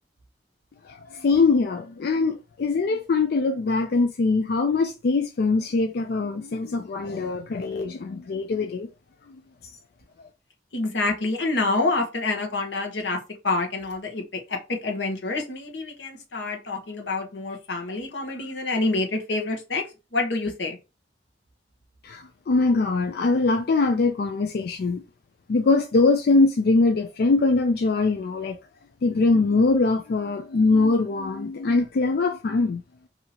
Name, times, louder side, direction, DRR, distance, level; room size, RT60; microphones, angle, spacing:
voice 1, 0.8-8.9 22.0-25.0 25.5-28.6 29.0-32.8, left 3 dB, 60° left, 0.4 m, -22 dB
voice 2, 10.7-20.8, left 3 dB, 90° left, 1.1 m, -27 dB
2.9 x 2.7 x 4.0 m
head